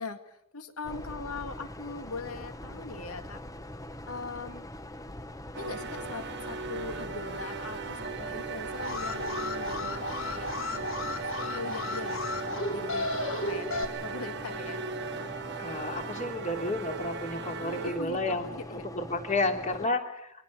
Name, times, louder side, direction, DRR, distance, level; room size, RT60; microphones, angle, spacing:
voice 1, 0.0-3.4 4.0-4.7 5.5-14.8 16.0-16.1 17.0-17.2 17.6-18.9 19.3-19.9, left 4 dB, 85° left, 8 dB, 2.1 m, -41 dB
sound 1, 0.8-19.9, left 1 dB, 15° left, 1.0 m, -43 dB
sound 2, 5.5-18.2, right 5 dB, 50° right, 1.5 m, -38 dB
Alarm, 8.7-13.8, left 2 dB, 65° left, 3.3 m, -34 dB
voice 2, 15.6-20.0, left 2 dB, 35° left, 4 dB, 3.2 m, -31 dB
24.5 x 18.5 x 8.4 m, 0.80 s
head